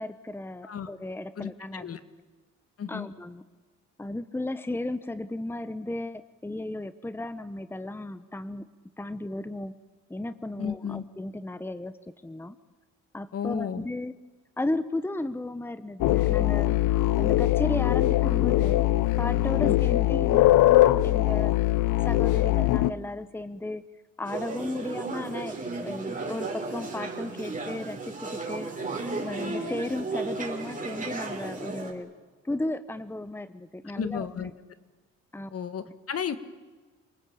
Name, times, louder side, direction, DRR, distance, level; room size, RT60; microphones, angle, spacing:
voice 1, 0.0-2.0 2.9-3.4 4.0-8.7 9.0-9.7 10.1-11.9 12.2-12.6 13.1-14.1 14.6-16.7 17.2-18.8 19.2-21.6 22.0-23.8 24.2-25.6 25.8-28.7 29.2-32.1 32.4-34.5 35.3-35.5, left 2 dB, 5° left, 13 dB, 1.1 m, -34 dB
voice 2, 1.4-2.0 2.8-3.1 10.6-11.0 13.3-13.9 19.6-20.0 33.9-34.5 35.5-36.4, left 7 dB, 50° left, 12 dB, 1.8 m, -33 dB
sound 1, 16.0-22.9, left 16 dB, 85° left, 0.8 m, -22 dB
sound 2, 24.2-31.9, right 3 dB, 25° right, 5.3 m, -34 dB
28.5 x 20.0 x 8.8 m, 1.3 s
cardioid pair, 90°, 30 cm